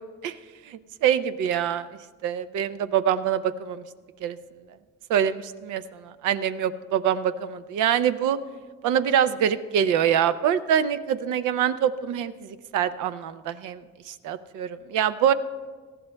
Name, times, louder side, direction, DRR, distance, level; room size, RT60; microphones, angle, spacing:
voice 1, 0.7-1.9 2.2-3.8 4.2-4.4 5.1-8.4 8.8-15.3, right 9 dB, 85° right, 13 dB, 0.6 m, -25 dB
18.5 x 14.0 x 2.2 m, 1.5 s
cardioid pair, 90°, 30 cm